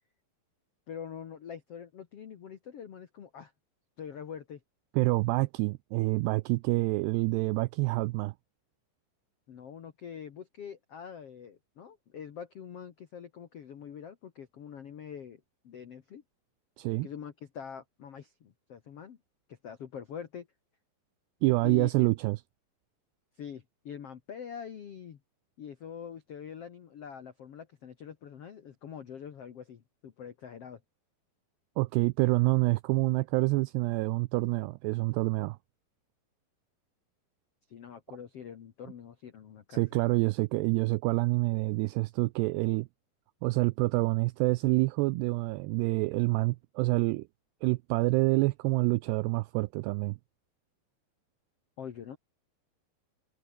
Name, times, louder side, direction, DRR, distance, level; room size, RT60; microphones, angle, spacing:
voice 1, 0.9-3.5 4.0-4.6 9.5-16.2 17.0-19.2 19.5-20.5 21.6-22.1 23.4-25.2 25.6-30.8 37.7-40.0 51.8-52.2, left 8 dB, 85° left, 1.3 m, -44 dB
voice 2, 5.0-8.3 16.8-17.1 21.4-22.4 31.8-35.6 39.7-42.9 43.4-47.3 47.6-50.2, right 23 dB, 85° right, 2.4 m, -27 dB
omnidirectional pair, 5.3 m